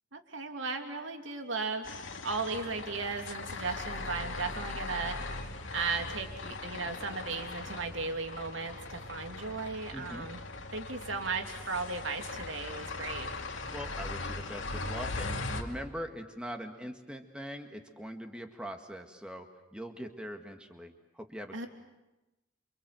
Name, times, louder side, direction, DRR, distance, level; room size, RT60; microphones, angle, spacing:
voice 1, 0.1-10.4 10.7-13.3 21.5-21.7, right 4 dB, 75° right, 5 dB, 3.0 m, -36 dB
sound 1, 1.8-15.6, left 3 dB, 80° left, 2.3 m, -40 dB
voice 2, 9.9-10.3 13.7-21.7, equal, 5° right, 5 dB, 1.8 m, -42 dB
28.5 x 25.5 x 7.8 m, 1.0 s
head